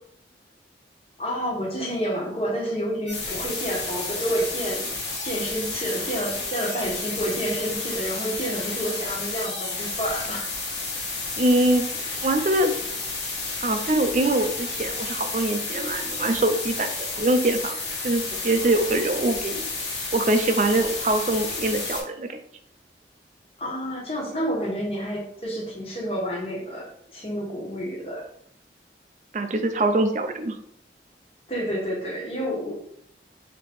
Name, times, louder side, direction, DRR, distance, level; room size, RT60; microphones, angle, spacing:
voice 1, 1.2-4.8 5.2-10.5 23.6-28.3 31.5-32.7, equal, 35° left, -3 dB, 1.2 m, -29 dB
sound 1, 3.1-22.0, left 3 dB, 80° left, 1.3 m, -31 dB
voice 2, 11.4-11.9 12.2-12.8 13.6-17.8 18.0-19.7 20.1-22.4 29.3-30.5, right 1 dB, 40° right, 7 dB, 0.4 m, -23 dB
4.7 x 2.9 x 3.5 m, 0.68 s
head